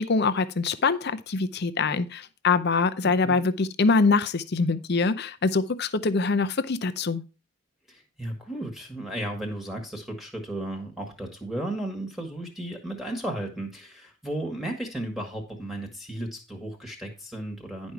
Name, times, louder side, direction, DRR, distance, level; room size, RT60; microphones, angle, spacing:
voice 1, 0.0-7.2, left 4 dB, 50° left, 14 dB, 0.6 m, -24 dB
voice 2, 3.0-3.4 7.9-17.9, right 1 dB, ahead, 2 dB, 1.5 m, -34 dB
10.5 x 5.3 x 4.6 m, 0.31 s
head